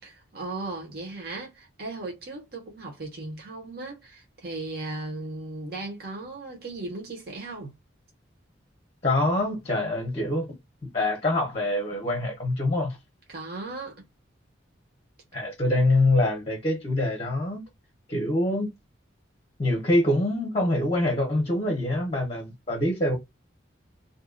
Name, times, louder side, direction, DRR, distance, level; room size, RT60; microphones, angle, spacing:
voice 1, 0.0-7.7 13.3-14.0, right 2 dB, 50° right, 1.0 m, -37 dB
voice 2, 9.0-10.5 10.9-13.0 15.3-17.6 18.1-18.7 19.6-23.2, left 1 dB, 30° left, 0.7 m, -25 dB
2.6 x 2.3 x 2.4 m
head